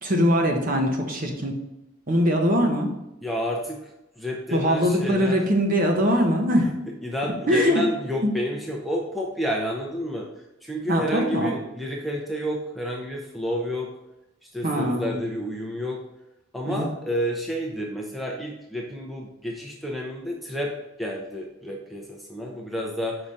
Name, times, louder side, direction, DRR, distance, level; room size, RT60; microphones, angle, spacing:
voice 1, 0.0-1.6 2.1-2.9 4.5-6.7 7.5-7.8 8.2-8.3 10.9-11.5 14.6-15.2 16.7-16.9, equal, 40° right, 2 dB, 1.0 m, -22 dB
voice 2, 3.2-3.8 4.2-5.4 7.0-10.3 10.6-13.9 14.4-16.0 16.5-20.7 21.0-23.2, equal, ahead, -1 dB, 0.6 m, -30 dB
5.0 x 5.0 x 4.2 m, 0.92 s
head